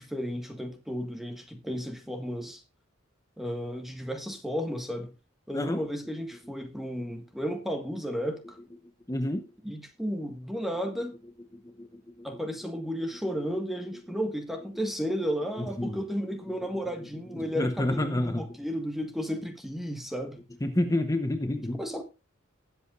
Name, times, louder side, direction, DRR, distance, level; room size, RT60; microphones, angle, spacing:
voice 1, 0.0-2.6 3.4-5.1 5.5-8.6 9.6-11.1 12.2-20.4 21.7-22.0, equal, ahead, 1.6 m, -33 dB
voice 2, 9.1-9.4 11.6-11.9 12.2-12.3 15.6-16.0 17.3-18.4 20.6-21.8, left 1 dB, 15° left, 0.9 m, -29 dB
19.0 x 8.1 x 2.5 m
head